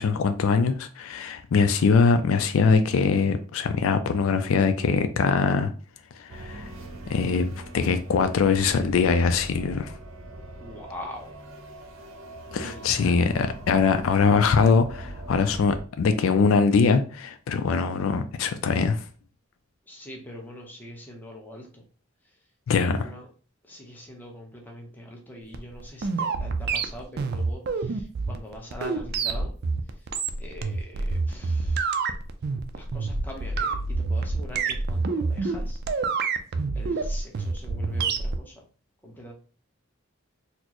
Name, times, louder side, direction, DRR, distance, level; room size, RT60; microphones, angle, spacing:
voice 1, 0.0-5.7 6.2-6.7 7.1-10.0 12.5-19.0 22.7-23.1, left 5 dB, 80° left, 0.4 m, -22 dB
sound 1, 6.3-15.8, right 1 dB, 80° right, 0.7 m, -41 dB
voice 2, 10.6-11.3 12.6-13.2 19.9-21.8 23.0-23.2 23.7-29.5 30.4-32.0 32.7-35.8 36.7-38.5 39.0-39.3, equal, 10° left, 0.8 m, -42 dB
sound 2, 25.5-38.4, right 4 dB, 50° right, 0.4 m, -27 dB
4.2 x 2.0 x 2.9 m
head